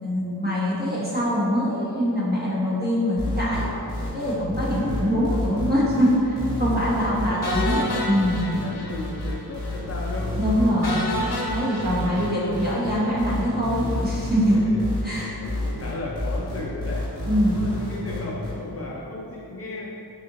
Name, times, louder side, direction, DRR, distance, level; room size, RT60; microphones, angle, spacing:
voice 1, 0.0-3.7 4.1-8.5 10.4-11.0 11.5-14.6 15.0-15.4 17.2-17.6, equal, 25° right, -7 dB, 1.0 m, -23 dB
sound 1, 3.2-18.5, left 1 dB, 10° left, 1.2 m, -29 dB
voice 2, 4.7-5.7 6.9-8.1 8.4-10.8 11.7-12.2 12.4-12.5 14.5-14.9 15.4-17.0 17.5-19.9, left 2 dB, 40° left, -4 dB, 0.4 m, -35 dB
sound 2, 7.4-9.3 9.6-9.7 10.1-10.2 10.8-13.1, left 1 dB, 80° left, 0.8 m, -30 dB
4.1 x 3.7 x 2.8 m, 2.7 s
wide cardioid pair, 155°, 38 cm